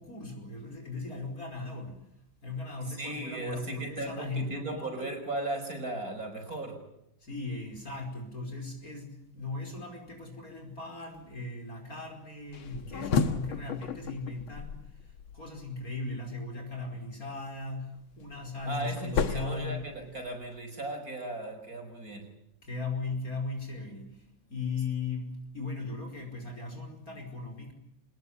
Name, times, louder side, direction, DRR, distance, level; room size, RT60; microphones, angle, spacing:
voice 1, 0.0-2.0 2.4-5.2 7.2-19.9 22.6-25.3 25.5-27.7, left 3 dB, 40° left, 3 dB, 5.4 m, -38 dB
voice 2, 2.9-6.8 18.7-22.3, right 2 dB, 40° right, 5 dB, 5.6 m, -37 dB
sound 1, 12.5-15.7 17.9-20.5, left 5 dB, 75° left, 2.2 m, -33 dB
25.5 x 20.5 x 9.9 m, 0.81 s
omnidirectional pair, 2.4 m